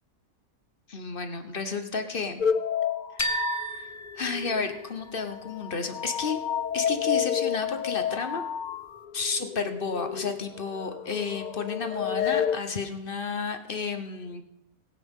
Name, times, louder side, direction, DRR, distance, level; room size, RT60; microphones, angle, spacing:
voice 1, 0.9-2.4 3.2-3.9 4.2-6.4 6.7-8.4 9.1-14.4, left 4 dB, 40° left, 7 dB, 1.0 m, -32 dB
sound 1, 2.4-5.0 5.3-12.6, left 8 dB, 80° left, 0.4 m, -30 dB
sound 2, 3.2-5.1, right 1 dB, 15° left, 0.7 m, -33 dB
22.0 x 9.9 x 3.7 m, 0.89 s
omnidirectional pair, 1.5 m